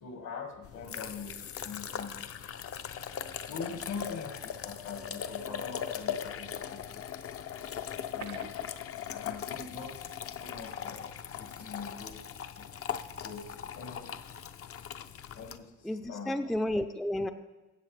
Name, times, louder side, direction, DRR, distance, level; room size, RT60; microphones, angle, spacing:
voice 1, 0.0-2.2 3.5-7.1 8.1-8.5 9.1-11.0 11.4-12.2 12.6-12.7 13.2-14.3 15.4-16.4, left 5 dB, 70° left, 5 dB, 1.8 m, -43 dB
sound 1, 0.6-15.6, left 8 dB, 50° left, 0.6 m, -39 dB
sound 2, 7.9-9.7 9.9-10.0 10.5-10.6, right 9 dB, 80° right, 0.7 m, -48 dB
voice 2, 15.8-17.3, left 1 dB, ahead, 7 dB, 0.4 m, -31 dB
14.0 x 7.7 x 3.3 m, 1.1 s
cardioid pair, 90°, 30 cm